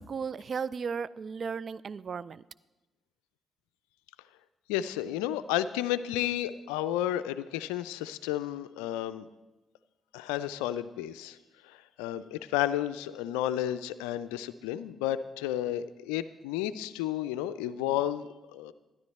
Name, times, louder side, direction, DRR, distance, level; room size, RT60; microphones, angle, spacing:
voice 1, 0.1-2.4, right 6 dB, 50° right, 19 dB, 0.3 m, -35 dB
voice 2, 4.7-9.3 10.1-11.4 12.0-18.3 18.5-18.7, left 12 dB, 80° left, 14 dB, 0.4 m, -32 dB
12.5 x 10.5 x 4.1 m, 1.1 s
hypercardioid pair, 40°, 0 cm